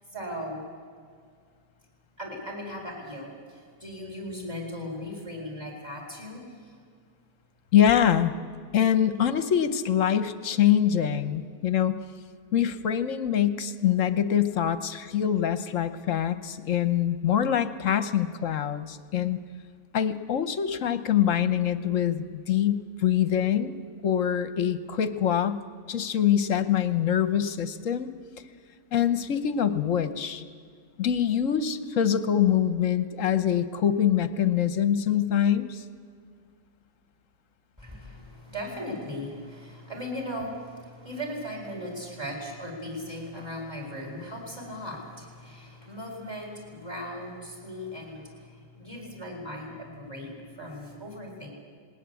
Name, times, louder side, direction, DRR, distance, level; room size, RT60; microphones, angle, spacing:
voice 1, 0.1-0.6 2.2-6.4 37.8-51.5, equal, 15° right, 1 dB, 5.1 m, -38 dB
voice 2, 7.7-8.3 8.7-12.0 12.5-19.4 19.9-25.6 25.9-28.1 28.9-30.4 31.0-35.8, left 9 dB, 55° left, 12 dB, 1.1 m, -24 dB
19.5 x 19.0 x 8.3 m, 2.1 s
omnidirectional pair, 1.8 m